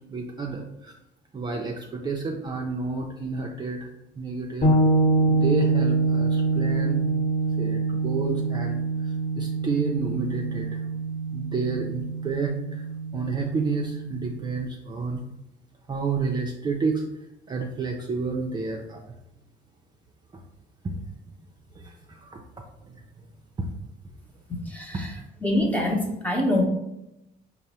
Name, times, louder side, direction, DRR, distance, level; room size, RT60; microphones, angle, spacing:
voice 1, 0.1-0.9 1.3-3.9 4.2-4.7 5.3-7.0 7.6-10.8 11.3-12.8 13.1-15.2 15.9-17.0 17.5-19.0 20.8-21.0 21.3-21.4 21.8-22.4 22.9-23.3 23.6-23.7 24.9-25.0, right 4 dB, 25° right, 0 dB, 0.4 m, -30 dB
sound 1, 4.6-14.3, right 3 dB, 40° left, 1.2 m, -25 dB
voice 2, 24.7-25.1 25.4-26.7, left 1 dB, 10° left, 0 dB, 0.8 m, -24 dB
4.6 x 2.0 x 4.1 m, 0.90 s
cardioid pair, 110°, 17 cm